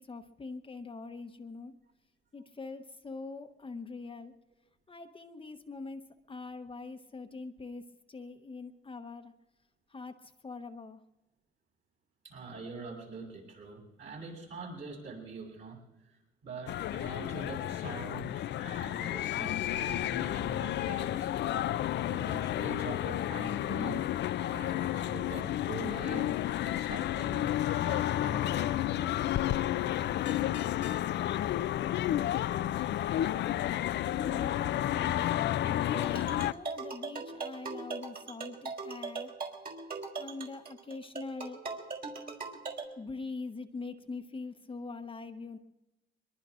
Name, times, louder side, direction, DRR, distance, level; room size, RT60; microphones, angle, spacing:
voice 1, 0.0-1.7 2.3-4.3 4.9-7.8 8.1-9.3 9.9-11.0 34.2-39.3 40.2-41.6 43.0-45.6, left 3 dB, 25° left, 6 dB, 0.9 m, -43 dB
voice 2, 12.2-15.8 16.1-16.2 16.4-21.3 21.7-24.0 24.3-26.4 26.6-29.0, right 4 dB, 65° right, -1 dB, 7.7 m, -44 dB
sound 1, 16.7-36.5, left 12 dB, 65° left, 0.4 m, -31 dB
sound 2, 35.9-42.8, right 4 dB, 50° right, 3.6 m, -40 dB
23.0 x 22.5 x 2.5 m, 1.0 s
cardioid pair, 90°, 20 cm